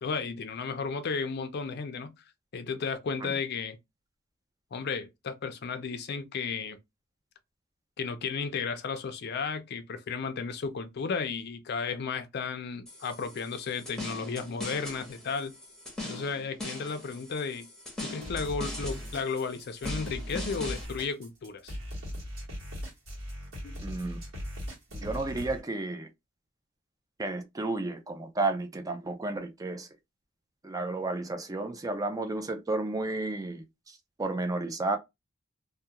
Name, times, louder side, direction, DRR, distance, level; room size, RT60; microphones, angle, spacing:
voice 1, 0.0-2.1 2.5-3.8 4.7-6.8 8.0-15.5 16.0-17.7 18.0-21.8 23.6-23.8, left 5 dB, 55° left, 0.4 m, -34 dB
sound 1, 12.9-20.9, left 2 dB, 5° left, 0.8 m, -41 dB
sound 2, 18.2-25.6, equal, 75° right, 1.2 m, -38 dB
voice 2, 23.8-24.2 24.9-26.1 27.2-29.9 30.6-35.0, right 2 dB, 20° right, 0.3 m, -32 dB
2.3 x 2.2 x 2.8 m
head